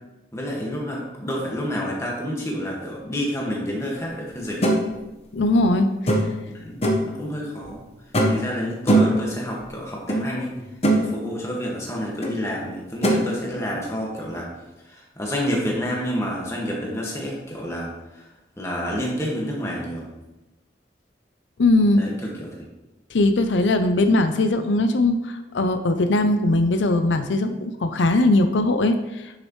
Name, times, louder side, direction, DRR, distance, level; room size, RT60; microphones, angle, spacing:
voice 1, 0.3-4.8 6.5-7.8 8.3-10.5 10.9-14.5 14.9-17.9 18.6-20.1 22.0-22.1 22.4-22.5, equal, 15° left, -3 dB, 1.8 m, -29 dB
sound 1, 4.6-4.8 6.1-6.4 6.8-7.1 8.1-8.5 8.9-9.2 10.1-10.2 10.6-11.0 12.2-12.3 13.0-13.2, right 1 dB, 35° left, 1.1 m, -19 dB
voice 2, 5.3-5.9 21.6-22.0 23.1-29.0, left 2 dB, 90° left, 8 dB, 0.6 m, -20 dB
10.5 x 6.4 x 3.2 m, 1.0 s
head